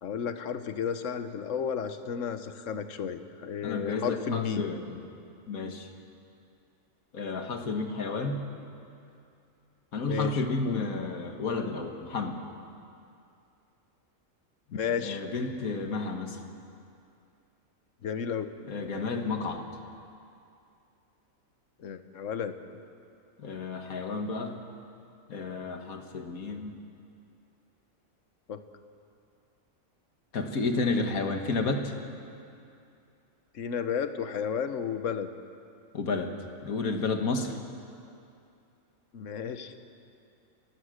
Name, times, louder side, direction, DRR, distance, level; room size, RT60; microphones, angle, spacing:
voice 1, 0.0-4.7 10.0-10.8 14.7-15.2 18.0-18.5 21.8-22.5 28.5-28.6 33.5-35.3 39.1-39.7, left 7 dB, 65° left, 9 dB, 1.3 m, -33 dB
voice 2, 3.6-5.0 5.5-5.9 7.1-8.4 9.9-12.4 15.0-16.4 18.7-19.7 23.4-24.6 25.3-26.8 30.3-31.9 35.9-36.3 36.6-37.5, left 3 dB, 85° left, 4 dB, 2.0 m, -31 dB
29.0 x 15.5 x 6.5 m, 2.5 s
omnidirectional pair, 1.5 m